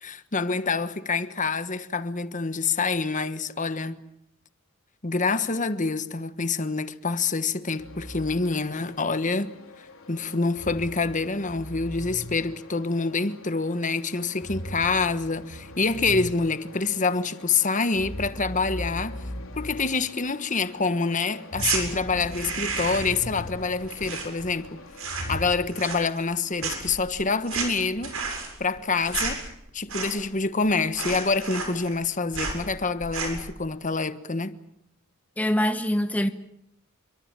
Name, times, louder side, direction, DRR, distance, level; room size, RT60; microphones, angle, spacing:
voice 1, 0.0-4.0 5.0-9.5 10.1-19.2 19.6-24.8 25.3-28.1 28.6-29.4 29.7-34.5, left 4 dB, 35° left, 1.4 m, -26 dB
sound 1, 7.8-25.5, equal, 70° left, 4.1 m, -40 dB
sound 2, 21.5-21.8 22.2-23.2 23.5-24.7 24.9-25.4 25.7-26.3 26.6-30.4 30.6-30.7 30.9-32.0 32.3-32.6 33.0-33.5, right 5 dB, 80° right, 7.5 m, -32 dB
voice 2, 35.4-36.3, equal, 5° left, 1.0 m, -24 dB
28.0 x 24.0 x 7.5 m
head